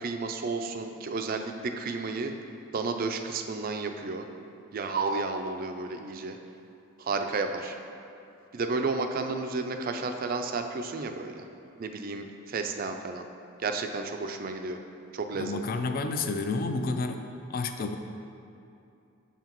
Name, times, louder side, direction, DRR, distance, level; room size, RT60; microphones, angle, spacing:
voice 1, 0.0-2.3 2.7-4.3 4.7-6.4 7.0-7.8 8.5-11.5 11.8-13.2 13.6-14.8 15.1-15.8, right 3 dB, 40° right, 6 dB, 0.3 m, -32 dB
voice 2, 15.3-17.2 17.5-18.0, left 3 dB, 40° left, 6 dB, 0.3 m, -30 dB
6.9 x 5.7 x 3.0 m, 2.7 s
head